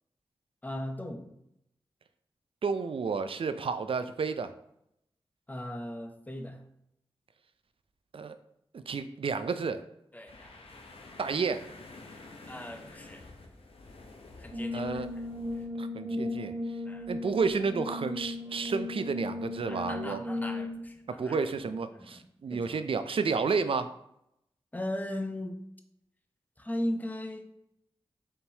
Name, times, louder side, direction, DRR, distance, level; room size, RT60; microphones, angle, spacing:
voice 1, 0.6-1.3 5.5-6.6 10.1-10.8 12.5-13.3 14.4-15.0 16.9-17.1 19.7-22.2 22.5-23.0 24.7-25.6 26.6-27.5, left 1 dB, 15° left, 6 dB, 0.6 m, -38 dB
voice 2, 2.6-4.5 8.1-8.3 8.7-9.8 11.2-11.6 14.7-15.1 15.8-16.5 17.1-20.2 21.2-23.9, right 5 dB, 60° right, 11 dB, 0.4 m, -31 dB
sound 1, 10.3-15.7, left 2 dB, 65° left, 0.7 m, -50 dB
Brass instrument, 14.5-20.9, left 2 dB, 35° right, 1.0 m, -36 dB
4.3 x 3.7 x 2.7 m, 0.78 s
cardioid pair, 40°, 10 cm